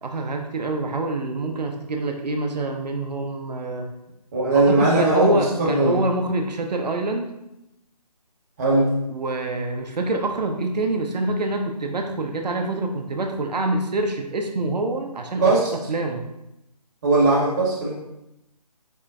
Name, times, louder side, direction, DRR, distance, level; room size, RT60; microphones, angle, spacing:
voice 1, 0.0-3.9 4.5-7.3 9.1-16.2, right 2 dB, 90° right, 3 dB, 0.4 m, -26 dB
voice 2, 4.3-6.0 8.6-8.9 15.4-15.7 17.0-17.9, right 2 dB, 25° right, -5 dB, 0.7 m, -19 dB
4.3 x 2.0 x 2.4 m, 0.88 s
figure-of-eight pair, 150°, 21 cm